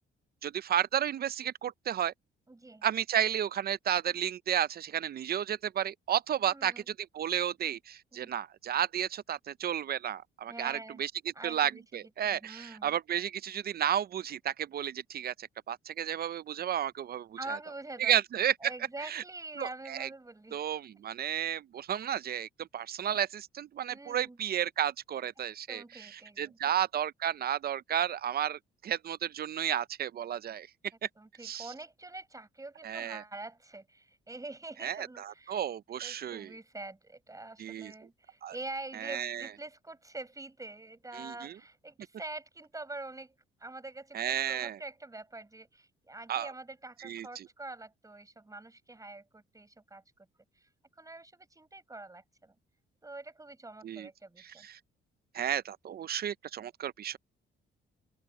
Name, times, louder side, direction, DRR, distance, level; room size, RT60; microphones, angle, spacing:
voice 1, 0.4-2.1 2.8-6.7 7.1-11.1 11.4-17.3 18.0-18.7 19.1-19.2 19.6-20.1 20.5-25.8 26.4-30.7 31.4-31.7 32.8-33.2 34.8-36.5 37.6-37.9 38.4-38.5 39.0-39.5 41.1-41.5 44.1-44.8 46.3-46.5 47.0-47.4 53.8-54.1 54.6-54.8 55.3-57.2, right 10 dB, 50° right, 0.5 m, -32 dB
voice 2, 2.5-2.8 6.4-6.9 8.1-8.4 10.5-11.0 11.3-13.0 17.4-18.1 18.6-20.6 23.9-24.4 25.7-26.7 31.2-35.7 36.0-50.0 50.6-50.7 51.0-52.5 53.0-54.7, right 2 dB, 15° right, 5.7 m, -45 dB
open air
cardioid pair, 90°, 20 cm